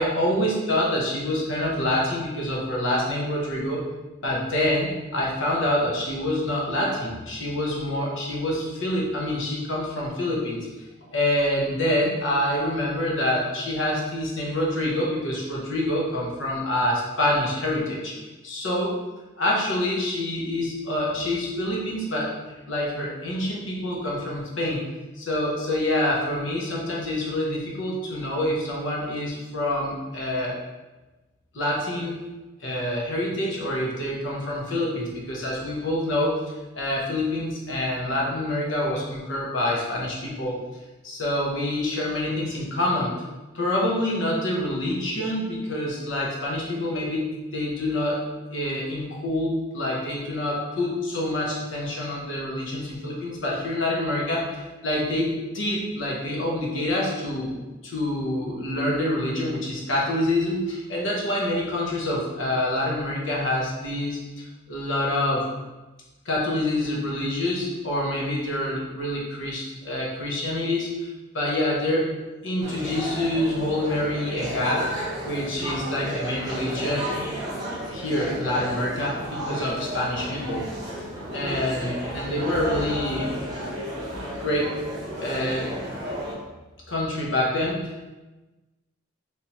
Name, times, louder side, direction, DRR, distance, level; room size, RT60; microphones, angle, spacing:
voice 1, 0.0-3.8 4.2-18.1 18.4-18.9 19.4-24.8 25.1-30.6 31.5-32.2 32.6-36.4 36.7-40.6 41.0-43.2 43.5-48.2 48.5-57.5 57.8-64.2 64.7-65.5 66.2-72.1 72.4-77.1 77.9-80.7 81.3-83.4 84.4-84.7 85.2-85.7 86.9-88.1, left 1 dB, 70° left, -3 dB, 0.9 m, -26 dB
sound 1, 72.6-86.3, equal, 20° right, 0.9 m, -33 dB
3.4 x 2.8 x 2.9 m, 1.1 s
head